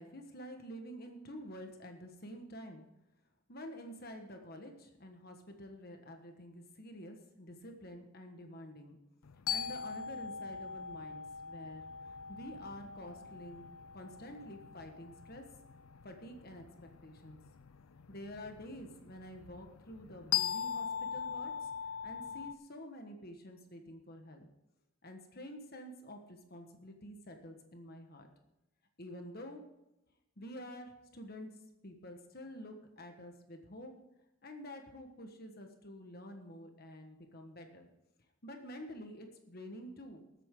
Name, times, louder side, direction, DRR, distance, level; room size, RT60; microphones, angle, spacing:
voice 1, 0.0-2.8 3.5-9.0 9.5-13.7 13.9-15.4 16.0-16.7 17.0-17.4 18.1-21.7 22.0-24.4 25.0-28.3 29.0-29.6 30.4-31.5 31.8-33.9 34.4-37.9 38.4-40.2, equal, 45° left, 4 dB, 1.4 m, -49 dB
sound 1, 9.2-22.5, left 8 dB, 75° left, 0.5 m, -41 dB
20.5 x 8.2 x 3.8 m, 0.92 s
head